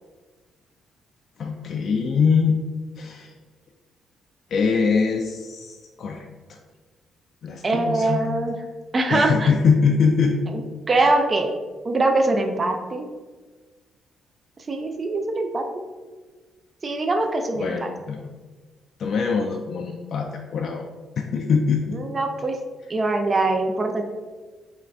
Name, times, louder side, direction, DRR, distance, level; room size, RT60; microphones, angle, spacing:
voice 1, 1.4-2.6 3.0-3.3 4.5-6.6 7.4-8.4 9.1-10.4 11.0-11.2 17.6-18.3 19.0-20.9 21.3-22.0, left 5 dB, 60° left, 2 dB, 0.3 m, -23 dB
voice 2, 7.6-8.6 8.9-9.5 10.5-10.6 10.9-11.5 11.8-13.1 14.7-15.8 16.8-17.9 21.9-22.6 22.9-24.0, right 2 dB, 35° right, 4 dB, 0.4 m, -23 dB
3.5 x 2.5 x 3.3 m, 1.3 s
cardioid pair, 90°, 0 cm